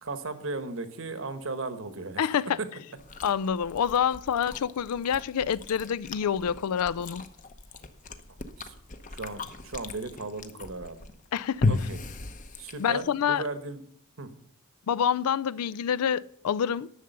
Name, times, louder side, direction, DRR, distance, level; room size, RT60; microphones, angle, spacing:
voice 1, 0.0-2.2 2.6-2.7 8.6-8.7 9.1-11.0 11.7-12.0 12.6-13.8 14.2-14.3, right 3 dB, 60° right, 1.2 m, -36 dB
voice 2, 2.2-2.6 3.2-7.2 11.3-11.7 12.8-13.4 14.9-16.9, left 8 dB, 90° left, 0.4 m, -27 dB
Chewing mastication, 3.0-13.1, left 3 dB, 35° left, 0.8 m, -36 dB
11.0 x 6.8 x 6.6 m
head